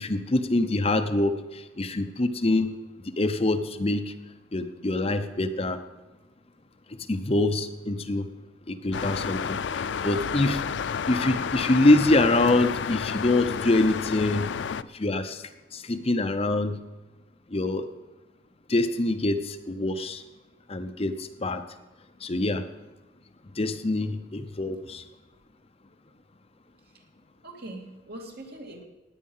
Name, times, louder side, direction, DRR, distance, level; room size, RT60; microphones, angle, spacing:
voice 1, 0.0-2.7 3.2-4.1 4.5-5.8 7.1-8.3 8.7-10.6 11.1-14.5 14.9-15.4 15.7-16.8 17.5-17.9 18.7-20.2 20.7-21.6 22.2-22.6 23.6-25.0, left 2 dB, 30° left, 8 dB, 0.7 m, -25 dB
sound 1, 8.9-14.8, left 6 dB, 70° left, 0.4 m, -31 dB
voice 2, 27.4-28.9, right 1 dB, 55° right, 1 dB, 2.5 m, -42 dB
17.5 x 9.7 x 5.6 m, 1.1 s
head